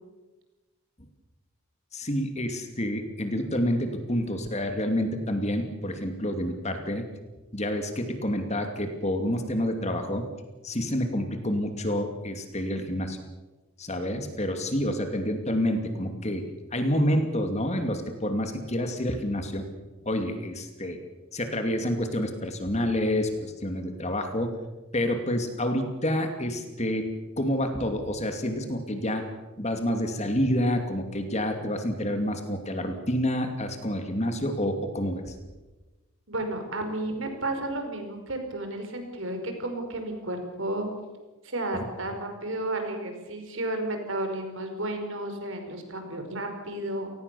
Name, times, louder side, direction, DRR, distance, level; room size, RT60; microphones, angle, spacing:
voice 1, 1.9-7.1 7.5-10.2 10.6-13.2 13.8-19.6 20.0-21.0 21.3-24.6 24.9-29.3 29.6-35.3, left 1 dB, 30° left, 6 dB, 2.6 m, -28 dB
voice 2, 36.3-40.9 41.4-47.1, right 1 dB, 60° right, 5 dB, 5.3 m, -32 dB
29.5 x 19.0 x 7.0 m, 1.2 s
head